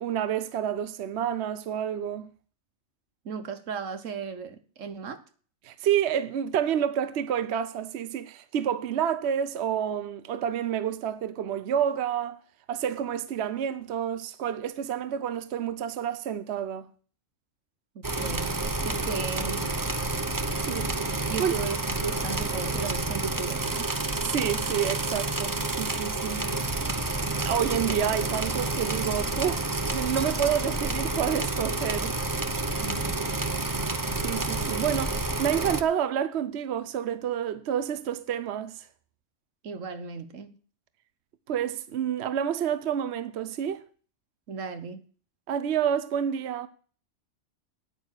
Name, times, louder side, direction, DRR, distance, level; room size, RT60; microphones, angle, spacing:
voice 1, 0.0-2.3 5.6-12.4 12.7-16.9 20.7-21.5 24.2-26.5 27.5-29.6 29.9-32.2 34.2-38.9 41.5-43.8 45.5-46.7, right 9 dB, 65° right, 1.0 m, -29 dB
voice 2, 3.2-5.2 17.9-19.8 21.2-23.9 32.8-33.2 39.6-40.6 44.5-45.0, right 5 dB, 85° right, 1.5 m, -36 dB
sound 1, 18.0-35.8, right 2 dB, 20° right, 0.7 m, -29 dB
9.3 x 9.0 x 6.5 m
omnidirectional pair, 1.3 m